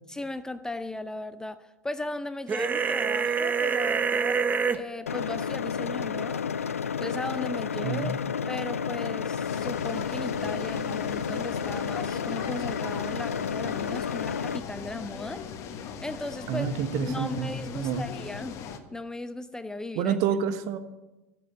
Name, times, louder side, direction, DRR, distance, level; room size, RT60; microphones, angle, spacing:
voice 1, 0.1-4.4 4.7-6.5 7.0-8.2 8.5-15.4 16.0-16.7 17.1-18.6 18.9-20.2, left 2 dB, 10° left, 12 dB, 0.7 m, -37 dB
sound 1, 2.5-4.8, right 5 dB, 25° right, 1.0 m, -26 dB
sound 2, 5.1-14.6, left 6 dB, 85° left, 0.4 m, -31 dB
voice 2, 7.8-8.1 16.5-18.1 20.0-20.8, right 7 dB, 50° right, 10 dB, 1.3 m, -28 dB
sound 3, 9.4-18.8, left 7 dB, 45° left, 1.5 m, -39 dB
15.0 x 7.7 x 9.0 m, 1.1 s
figure-of-eight pair, 80°, 7 cm